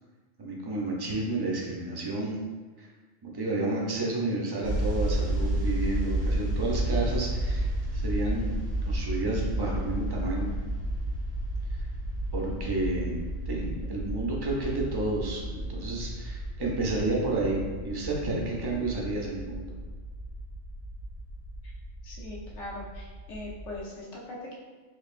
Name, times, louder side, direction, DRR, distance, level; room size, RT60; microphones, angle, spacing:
voice 1, 0.4-2.4 2.8-2.9 3.2-8.6 8.8-10.5 12.3-13.2 13.5-19.6, right 2 dB, 35° right, -3 dB, 0.3 m, -31 dB
sound 1, 4.6-23.8, right 1 dB, 40° left, 0.8 m, -32 dB
voice 2, 22.0-24.5, left 1 dB, 70° left, -5 dB, 1.2 m, -40 dB
4.0 x 3.0 x 2.5 m, 1.4 s
omnidirectional pair, 1.2 m